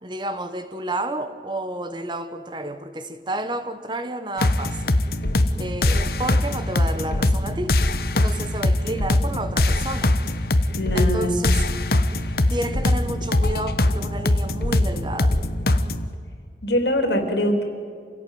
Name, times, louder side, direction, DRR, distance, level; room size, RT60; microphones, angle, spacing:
voice 1, 0.0-4.9 5.6-7.8 8.1-10.1 10.9-11.6 12.5-15.4, right 1 dB, 25° right, 1.2 m, -31 dB
sound 1, 4.4-16.0, left 1 dB, 55° left, 1.1 m, -21 dB
voice 2, 10.7-11.4 16.6-17.6, equal, 80° left, 3.5 m, -22 dB
26.5 x 17.0 x 9.3 m
head